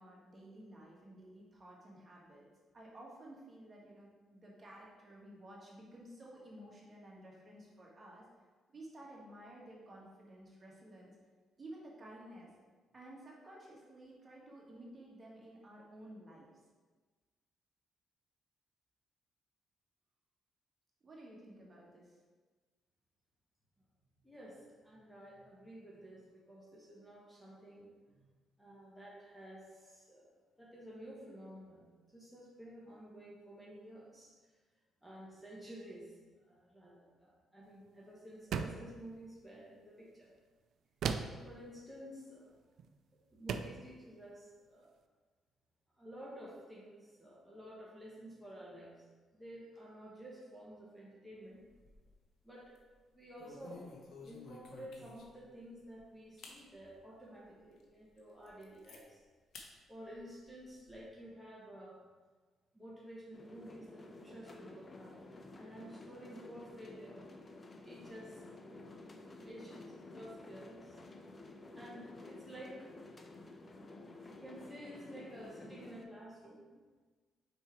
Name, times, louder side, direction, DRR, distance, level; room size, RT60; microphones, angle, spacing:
voice 1, 0.0-2.5 2.7-8.2 8.7-11.1 11.6-12.5 12.9-16.5 21.0-22.1, right 1 dB, 30° right, -4 dB, 1.6 m, -53 dB
voice 2, 24.2-27.9 28.2-28.3 28.6-30.3 30.6-34.3 35.0-40.3 41.3-42.5 43.3-44.9 46.0-49.0 49.3-51.6 52.4-52.7 53.1-53.8 54.2-59.2 59.9-62.0 62.7-65.3 65.6-67.2 67.8-68.6 69.4-69.9 70.1-71.0 71.7-72.9 74.2-76.6, equal, ahead, -5 dB, 1.3 m, -52 dB
sound 1, 38.5-38.9 41.0-41.5 42.8-42.9 43.5-43.8, right 6 dB, 70° right, 0.3 m, -36 dB
sound 2, 51.5-52.3 52.6-52.8 53.4-55.5 55.9-56.0 56.4-56.6 57.1-57.2 57.8-57.9 58.2-59.0 59.5-59.7 60.1-61.0, left 3 dB, 70° left, 0.9 m, -54 dB
sound 3, 63.3-76.0, left 2 dB, 30° left, 0.6 m, -52 dB
4.9 x 4.3 x 4.6 m, 1.4 s
cardioid pair, 90°, 0 cm